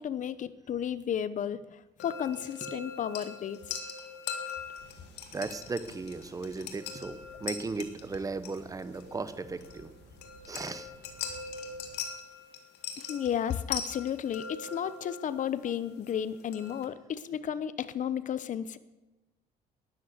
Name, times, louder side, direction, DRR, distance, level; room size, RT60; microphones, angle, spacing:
voice 1, 0.0-3.7 13.0-18.8, left 9 dB, 50° left, 15 dB, 0.9 m, -33 dB
sound 1, 2.0-16.9, left 6 dB, 80° left, 2.1 m, -42 dB
sound 2, 4.8-12.0, right 4 dB, 85° right, 2.1 m, -56 dB
voice 2, 5.3-9.9 10.5-10.9, right 3 dB, 20° right, 13 dB, 1.1 m, -36 dB
12.0 x 10.5 x 8.1 m, 1.1 s
cardioid pair, 110°, 17 cm